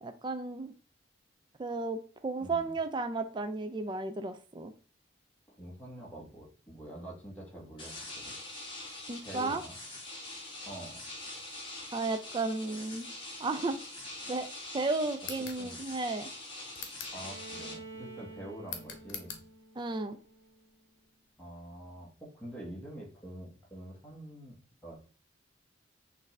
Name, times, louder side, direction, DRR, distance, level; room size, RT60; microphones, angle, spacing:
voice 1, 0.0-0.7 1.6-4.7 9.1-9.6 11.9-13.1 13.4-13.8 14.3-14.5 14.7-16.3 19.8-20.2, right 3 dB, 25° right, 8 dB, 0.3 m, -33 dB
voice 2, 2.4-2.7 5.5-8.4 9.2-9.8 10.6-11.0 15.6-15.8 17.1-19.4 21.4-24.6 24.8-24.9, right 1 dB, 10° left, -4 dB, 1.5 m, -46 dB
sound 1, 7.8-17.7, left 2 dB, 25° left, 1.5 m, -44 dB
sound 2, 15.2-15.6 16.7-17.2 18.7-19.4, left 7 dB, 75° left, 0.9 m, -43 dB
Bowed string instrument, 17.1-21.0, right 2 dB, 65° right, 1.2 m, -49 dB
6.3 x 2.6 x 3.2 m, 0.39 s
head